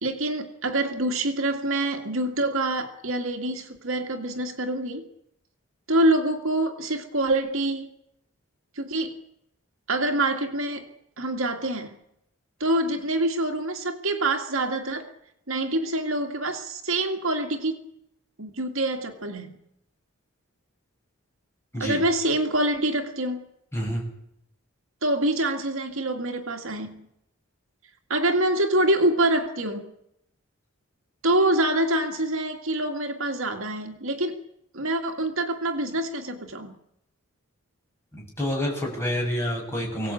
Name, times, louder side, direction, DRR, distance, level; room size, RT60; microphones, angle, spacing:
voice 1, 0.0-5.0 5.9-7.9 8.8-9.2 9.9-10.9 11.2-12.0 12.6-15.1 15.5-17.8 18.4-19.6 21.8-23.5 25.0-27.1 28.1-29.9 31.2-34.4 34.7-36.7, right 1 dB, 65° right, 4 dB, 2.1 m, -25 dB
voice 2, 23.7-24.0 38.1-40.1, equal, 10° left, -2 dB, 7.3 m, -28 dB
24.0 x 17.5 x 8.6 m, 0.79 s
head